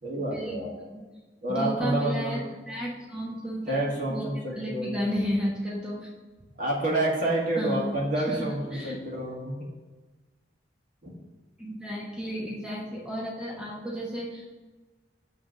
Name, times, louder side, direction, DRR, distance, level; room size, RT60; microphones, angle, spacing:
voice 1, 0.0-0.7 1.4-2.4 3.7-4.9 6.6-9.5, right 1 dB, 50° right, -3 dB, 2.1 m, -28 dB
voice 2, 1.5-3.8 4.1-4.3 4.6-6.1 7.6-9.0 11.6-14.5, equal, 5° right, -4 dB, 1.2 m, -32 dB
7.8 x 3.9 x 6.4 m, 1.3 s
head